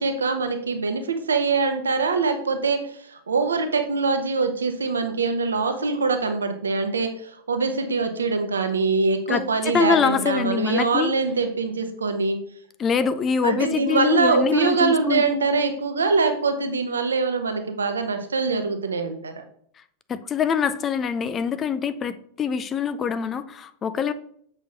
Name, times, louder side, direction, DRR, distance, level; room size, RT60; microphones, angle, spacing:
voice 1, 0.0-12.4 13.4-19.4, right 4 dB, 70° right, 7 dB, 1.1 m, -23 dB
voice 2, 9.3-11.1 12.8-15.4 20.1-24.1, left 6 dB, 25° left, 13 dB, 0.5 m, -24 dB
7.5 x 6.2 x 3.9 m, 0.65 s
figure-of-eight pair, 90°, 0 cm